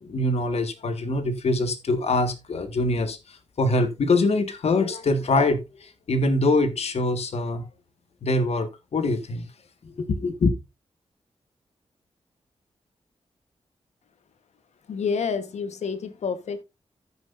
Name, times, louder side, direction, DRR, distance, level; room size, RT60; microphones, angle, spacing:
voice 1, 0.0-7.7 8.2-9.5 9.8-10.5, left 2 dB, 65° left, 1.6 m, -24 dB
voice 2, 14.9-16.6, left 5 dB, 85° left, 1.2 m, -28 dB
15.0 x 6.3 x 2.5 m
wide cardioid pair, 105°, 11 cm